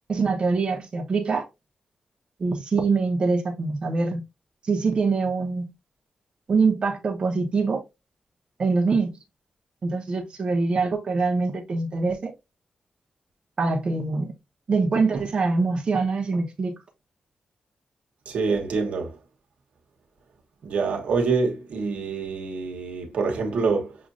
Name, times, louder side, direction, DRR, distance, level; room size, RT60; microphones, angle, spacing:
voice 1, 0.1-1.5 2.4-4.2 4.6-5.7 6.5-7.8 8.6-9.1 9.8-12.3 13.6-14.3 14.7-16.7, right 4 dB, 45° right, 0.9 m, -24 dB
voice 2, 18.3-19.1 20.6-24.0, right 4 dB, 85° right, 1.1 m, -26 dB
6.2 x 2.5 x 2.5 m
wide cardioid pair, 100°, 2 cm